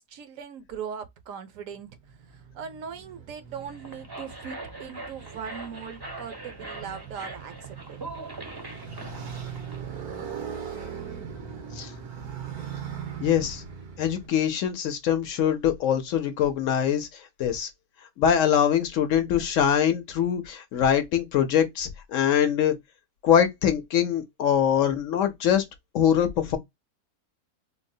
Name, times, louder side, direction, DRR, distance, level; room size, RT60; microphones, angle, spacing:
voice 1, 0.0-2.0 2.3-8.0, right 7 dB, 70° right, 1.0 m, -39 dB
Motorcycle, 1.8-14.3, right 7 dB, 90° right, 1.5 m, -40 dB
sound 1, 3.6-9.8, right 2 dB, 30° right, 0.4 m, -41 dB
voice 2, 13.2-13.6 14.0-17.7 18.2-22.7 23.2-25.7 25.9-26.6, left 9 dB, 70° left, 0.9 m, -23 dB
3.8 x 2.0 x 2.6 m
omnidirectional pair, 1.6 m